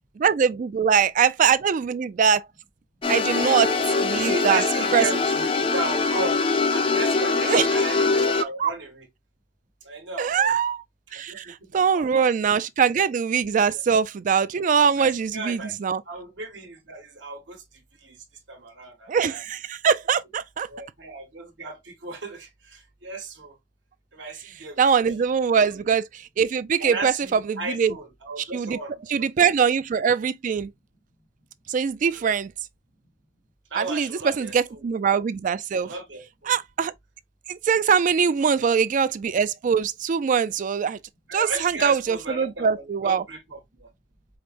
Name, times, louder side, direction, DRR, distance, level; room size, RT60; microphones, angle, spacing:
voice 1, 0.2-2.4 3.1-3.7 4.0-4.6 4.9-5.0 7.4-7.7 8.6-8.7 10.2-10.8 11.1-16.0 19.1-20.7 24.8-27.9 28.5-28.8 29.1-30.7 31.7-32.5 33.7-35.9 36.5-36.9 37.5-41.0 41.3-43.2, right 6 dB, 45° right, 0.3 m, -22 dB
sound 1, 3.0-8.4, left 4 dB, 30° left, 0.4 m, -23 dB
voice 2, 4.2-6.4 6.7-9.1 9.8-10.5 11.3-12.3 13.7-14.0 15.0-17.6 18.0-18.2 18.5-19.4 20.7-23.6 24.1-24.8 25.5-25.9 26.8-29.3 32.1-32.4 33.7-34.9 35.8-36.5 38.4-38.5 41.3-43.9, right 2 dB, 75° right, 1.3 m, -35 dB
4.9 x 2.0 x 2.9 m
head